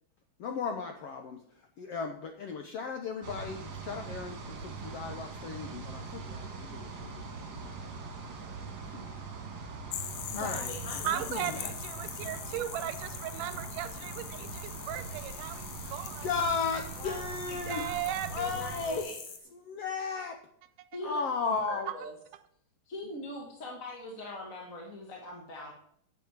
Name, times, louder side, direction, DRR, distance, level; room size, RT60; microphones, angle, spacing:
voice 1, 0.4-8.6 8.9-9.2 10.3-10.7 11.0-11.7 16.2-17.8 18.3-19.1 19.5-20.4 21.0-21.9, left 5 dB, 70° left, 5 dB, 1.4 m, -36 dB
sound 1, 3.2-19.0, right 4 dB, 45° right, 2.1 m, -42 dB
sound 2, 9.9-19.4, left 10 dB, 90° left, 1.3 m, -43 dB
voice 2, 10.3-11.7 17.0-17.2 17.5-19.1 20.9-22.1 22.8-25.7, left 1 dB, 35° left, -1 dB, 1.5 m, -42 dB
voice 3, 11.0-16.3 17.7-18.5, right 12 dB, 85° right, 11 dB, 2.2 m, -37 dB
8.6 x 8.2 x 7.3 m, 0.68 s
omnidirectional pair, 3.7 m